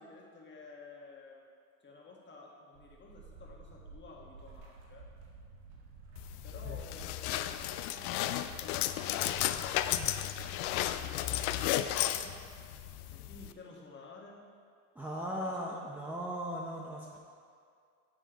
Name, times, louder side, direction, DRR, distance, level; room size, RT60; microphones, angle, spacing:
voice 1, 0.0-1.4 1.8-5.1 6.4-9.4 11.0-12.4 13.1-14.4 15.4-15.6, left 3 dB, 25° left, -2 dB, 1.6 m, -53 dB
sound 1, 2.7-13.5, right 3 dB, 85° right, 1.6 m, -53 dB
sound 2, 6.2-13.5, left 13 dB, 85° left, 0.5 m, -34 dB
voice 2, 15.0-17.2, equal, 5° right, -4 dB, 0.7 m, -38 dB
10.5 x 7.2 x 3.0 m, 2.3 s
supercardioid pair, 110°, 43 cm